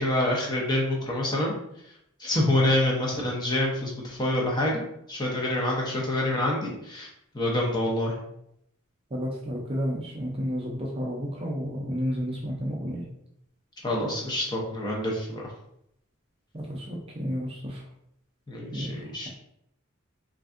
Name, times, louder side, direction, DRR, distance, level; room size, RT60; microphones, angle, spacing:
voice 1, 0.0-1.5 2.2-7.1 7.3-8.1 13.8-15.4 18.5-19.3, left 1 dB, 20° left, -3 dB, 0.6 m, -26 dB
voice 2, 9.1-13.1 16.5-17.8 18.7-18.9, equal, 25° right, -2 dB, 0.4 m, -31 dB
3.3 x 2.5 x 2.4 m, 0.76 s
head